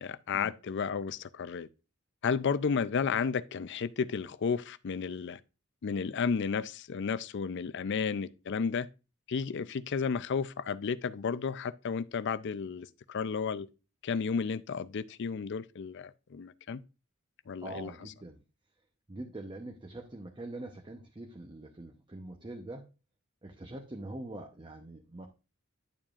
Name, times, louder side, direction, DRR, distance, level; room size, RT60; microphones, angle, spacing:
voice 1, 0.0-1.7 2.2-5.4 5.8-8.9 9.3-13.7 14.0-16.8 17.5-17.9, left 5 dB, 55° left, 0.4 m, -32 dB
voice 2, 17.6-18.4 19.1-22.9 23.4-25.3, right 2 dB, 25° right, 0.8 m, -44 dB
10.5 x 7.2 x 2.4 m
head